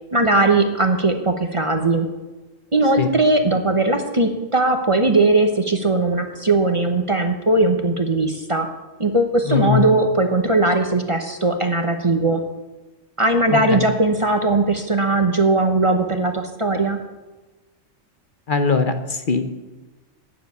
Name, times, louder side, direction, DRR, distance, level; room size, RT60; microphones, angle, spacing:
voice 1, 0.1-2.1 2.7-8.7 9.0-12.4 13.2-17.0, right 2 dB, 30° right, 6 dB, 0.9 m, -19 dB
voice 2, 9.5-9.9 13.5-13.8 18.5-19.4, left 5 dB, 50° left, 8 dB, 0.9 m, -20 dB
9.2 x 7.4 x 9.2 m, 1.2 s
omnidirectional pair, 1.2 m